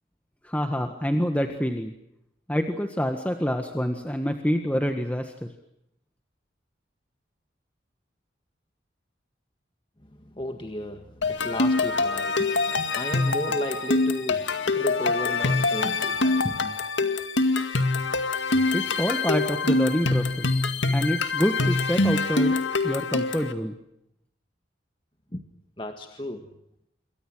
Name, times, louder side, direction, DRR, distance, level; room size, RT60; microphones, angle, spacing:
voice 1, 0.4-1.9 2.5-5.5 18.7-20.6 20.9-22.6 22.8-23.8, equal, 10° left, 5 dB, 1.6 m, -27 dB
voice 2, 10.0-16.7 25.3-25.4 25.8-26.5, left 1 dB, 25° left, 5 dB, 1.7 m, -34 dB
sound 1, 11.2-23.5, left 3 dB, 80° left, 2.1 m, -25 dB
28.0 x 23.5 x 6.3 m, 0.79 s
head